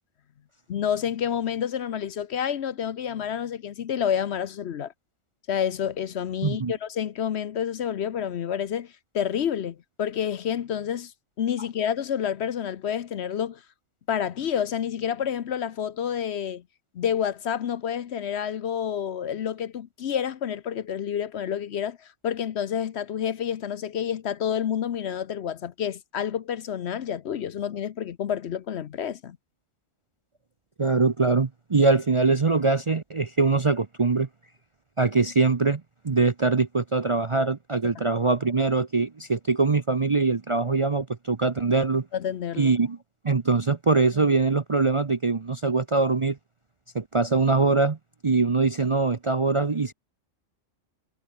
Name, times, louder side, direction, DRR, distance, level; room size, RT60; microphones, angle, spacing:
voice 1, 0.7-4.9 5.5-11.1 11.4-13.6 14.1-16.6 16.9-29.4 42.1-42.7, left 8 dB, 60° left, 1.0 m, -29 dB
voice 2, 6.4-6.7 30.8-34.3 35.0-42.0 42.6-43.0 43.2-46.4 46.9-48.0 48.2-49.9, right 3 dB, 30° right, 0.6 m, -23 dB
omnidirectional pair, 1.3 m